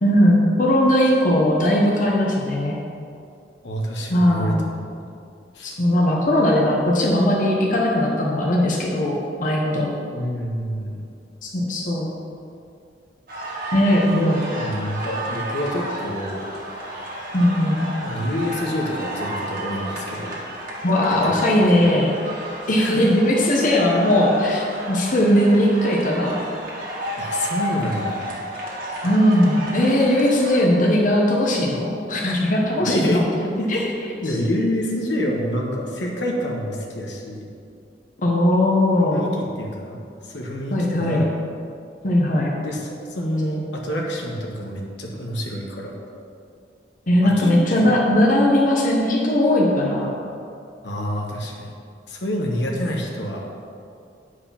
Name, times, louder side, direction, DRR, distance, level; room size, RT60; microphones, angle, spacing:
voice 1, 0.0-2.8 4.1-4.6 5.6-9.9 11.4-12.1 13.7-14.4 17.3-17.9 20.8-22.2 22.7-26.4 29.0-33.2 33.6-34.1 38.2-39.3 40.7-41.2 42.0-42.5 47.1-50.1, left 1 dB, 45° left, -2 dB, 1.0 m, -19 dB
voice 2, 3.6-4.9 5.5-5.8 10.1-11.0 14.1-16.4 18.0-20.4 21.2-21.4 21.7-21.8 22.8-23.1 27.2-28.2 32.8-33.9 34.2-37.5 39.1-41.2 42.6-45.9 47.2-47.9 50.8-51.7 52.1-53.5, equal, 75° left, -1 dB, 1.2 m, -27 dB
sound 1, 13.3-30.6, equal, 50° right, 1.7 m, -32 dB
9.0 x 4.8 x 5.7 m, 2.4 s
head